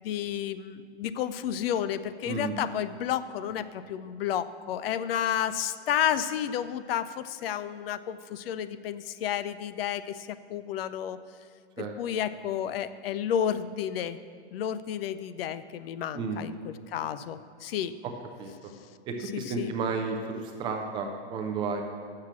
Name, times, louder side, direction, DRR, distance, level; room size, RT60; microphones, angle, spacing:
voice 1, 0.0-11.2 11.8-14.2 14.5-17.9 19.3-19.7, left 10 dB, 60° left, 13 dB, 0.5 m, -31 dB
voice 2, 2.3-2.6 11.8-11.9 16.1-16.4 18.4-18.5 19.1-21.8, right 4 dB, 15° right, 3 dB, 0.3 m, -32 dB
7.2 x 6.7 x 7.2 m, 2.3 s
hypercardioid pair, 135°, 34 cm